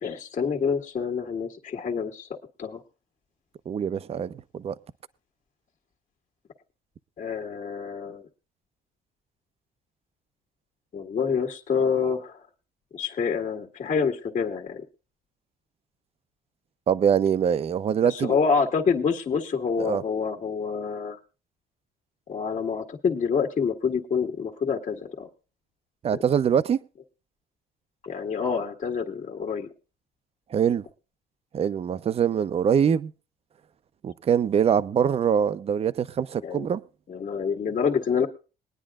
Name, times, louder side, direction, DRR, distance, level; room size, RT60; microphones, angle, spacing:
voice 1, 0.0-2.8 7.2-8.2 10.9-12.4 12.9-14.8 18.0-21.2 22.3-25.3 26.1-26.2 28.0-29.7 36.4-36.6 37.1-38.3, left 6 dB, 45° left, 1.7 m, -27 dB
voice 2, 3.7-4.8 16.9-18.3 19.8-20.0 26.0-26.8 30.5-30.8 31.5-33.1 34.0-36.8, right 8 dB, 35° right, 0.6 m, -23 dB
21.5 x 10.0 x 2.4 m
cardioid pair, 110°, 17 cm